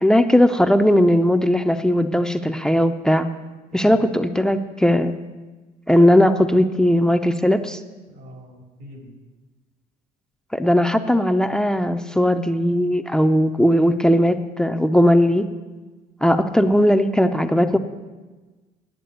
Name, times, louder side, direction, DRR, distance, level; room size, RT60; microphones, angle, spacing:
voice 1, 0.0-3.3 3.7-5.1 5.9-7.8 10.5-15.5 16.2-17.8, equal, 5° left, 8 dB, 0.6 m, -18 dB
voice 2, 3.7-4.0 8.1-9.1 17.6-17.8, equal, 85° right, 2 dB, 2.9 m, -42 dB
9.7 x 7.4 x 9.2 m, 1.2 s
cardioid pair, 110°, 17 cm